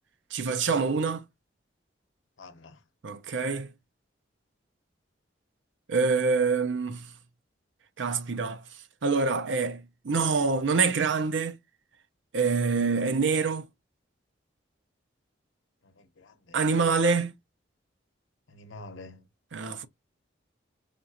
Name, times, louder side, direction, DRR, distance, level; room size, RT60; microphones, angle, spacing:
voice 1, 0.3-1.2 3.0-3.7 5.9-7.1 8.0-8.6 9.0-11.6 12.3-13.7 16.5-17.4 19.5-19.9, right 4 dB, 75° right, 0.6 m, -26 dB
voice 2, 2.4-2.8 15.8-16.6 18.5-19.3, left 2 dB, 85° left, 0.8 m, -47 dB
5.1 x 2.4 x 2.8 m
head